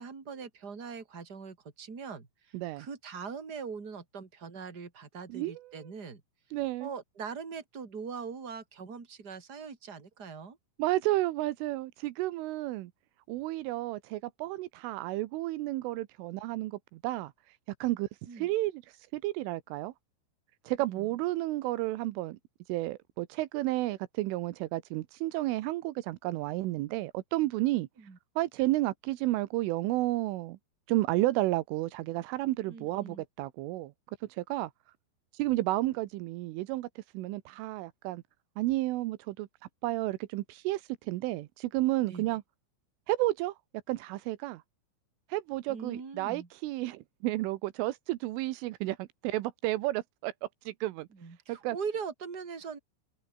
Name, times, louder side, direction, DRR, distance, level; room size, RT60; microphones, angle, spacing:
voice 1, 0.0-6.2 6.8-10.6 18.3-18.5 20.8-21.1 28.0-28.2 32.7-33.2 42.0-42.3 45.7-46.5 51.1-52.8, right 5 dB, 20° right, 3.4 m, -41 dB
voice 2, 2.5-2.9 5.3-5.6 6.5-6.9 10.8-12.9 13.3-17.3 17.8-18.1 18.4-18.8 19.1-19.9 20.7-22.4 22.7-27.9 28.4-30.6 30.9-33.9 34.4-34.7 35.4-36.9 37.2-38.2 38.6-39.5 39.8-40.8 41.1-42.4 43.1-43.5 43.9-44.6 45.3-50.3 50.7-51.1 51.5-51.8, right 17 dB, 85° right, 3.5 m, -31 dB
open air
omnidirectional pair, 5.6 m